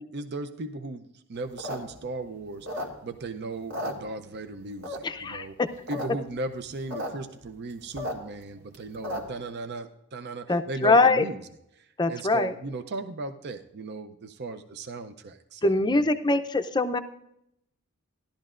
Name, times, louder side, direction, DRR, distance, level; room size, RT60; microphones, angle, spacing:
voice 1, 0.0-5.5 5.9-11.4 11.7-16.1, right 3 dB, 50° right, 8 dB, 0.5 m, -37 dB
sound 1, 1.4-3.3 3.6-4.5 4.8-5.3 5.7-6.1 6.3-6.4 6.6-7.1 7.4-9.4, left 1 dB, 80° right, 2.1 m, -34 dB
voice 2, 5.0-5.7 10.5-11.2 12.0-12.5 15.6-17.0, left 3 dB, 20° left, 8 dB, 0.5 m, -23 dB
15.5 x 11.5 x 2.5 m, 0.78 s
head